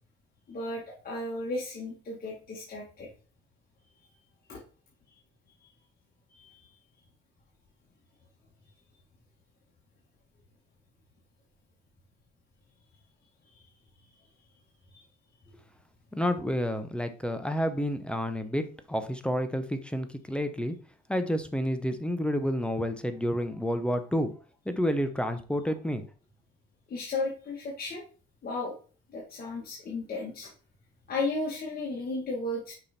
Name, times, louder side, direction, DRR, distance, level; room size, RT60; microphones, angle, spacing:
voice 1, 0.5-3.1 4.5-4.6 6.3-6.7 13.5-13.7 26.9-28.0 28.4-28.7 29.1-30.5 31.1-32.7, left 2 dB, 50° left, -2 dB, 1.8 m, -34 dB
voice 2, 16.1-20.7 21.1-24.3 24.7-26.0, equal, 5° left, 8 dB, 0.9 m, -29 dB
6.0 x 4.8 x 4.3 m, 0.38 s
cardioid pair, 90°, 20 cm